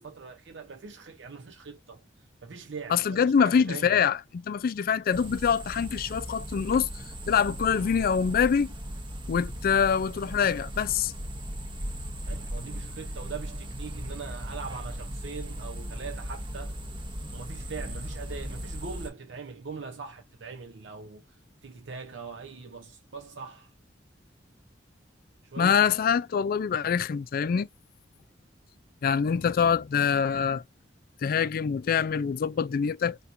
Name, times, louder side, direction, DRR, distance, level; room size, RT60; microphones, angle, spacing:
voice 1, 0.0-2.0 2.4-4.0 12.3-16.8 17.3-21.4 21.6-23.7 25.4-25.8, right 5 dB, 75° right, 0.7 m, -41 dB
voice 2, 2.9-6.9 7.3-8.7 9.3-11.1 25.6-27.7 29.0-30.6 31.2-33.2, left 7 dB, 50° left, 0.3 m, -25 dB
sound 1, 5.1-19.1, equal, 25° right, 0.9 m, -37 dB
4.3 x 2.3 x 2.5 m
head